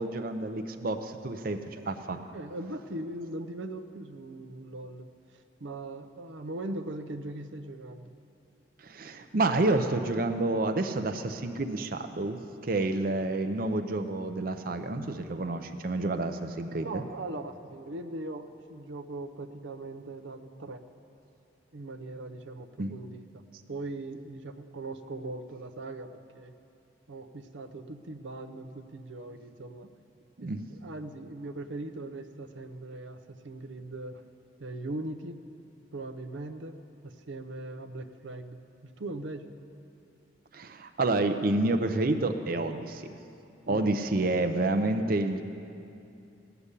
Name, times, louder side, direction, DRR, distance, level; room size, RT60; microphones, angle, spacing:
voice 1, 0.0-1.6 1.9-2.2 8.8-12.4 12.6-17.0 22.8-22.9 30.4-30.6 40.5-43.1 43.7-45.4, right 2 dB, 50° right, 7 dB, 0.6 m, -29 dB
voice 2, 2.3-5.1 5.3-8.1 16.8-20.8 21.7-26.5 27.1-29.9 30.4-34.2 34.6-35.4 35.9-36.8 37.0-38.6 39.0-39.4 43.7-43.9, right 2 dB, 90° right, 7 dB, 0.7 m, -40 dB
16.5 x 6.9 x 9.8 m, 2.6 s
head